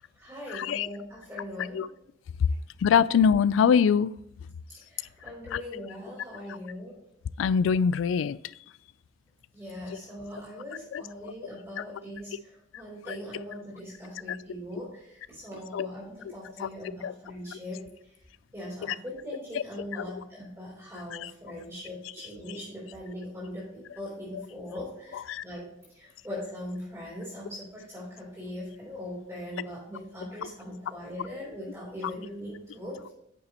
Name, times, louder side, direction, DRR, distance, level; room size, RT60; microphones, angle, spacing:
voice 1, 0.1-1.8 4.8-6.9 9.5-17.8 18.5-25.7 25.9-33.1, left 1 dB, 15° right, 3.4 m, -40 dB
voice 2, 2.8-4.1 5.5-5.6 7.4-8.4 15.7-15.9 16.6-16.7 17.0-17.1 25.3-25.4, left 7 dB, 85° left, 0.3 m, -22 dB
9.2 x 6.8 x 2.9 m
head